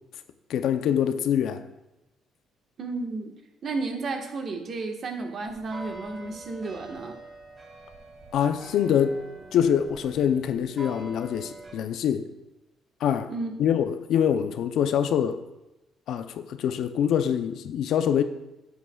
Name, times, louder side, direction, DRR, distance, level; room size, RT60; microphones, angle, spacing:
voice 1, 0.5-1.6 8.3-9.2 9.5-12.3 13.0-13.3 13.6-15.4 16.1-18.2, left 9 dB, 75° left, 0.6 m, -24 dB
voice 2, 2.8-7.2 13.3-13.5, right 3 dB, 55° right, 1.4 m, -33 dB
sound 1, 5.5-11.7, right 2 dB, 35° right, 1.8 m, -44 dB
11.0 x 8.1 x 2.4 m
cardioid pair, 85°, 0 cm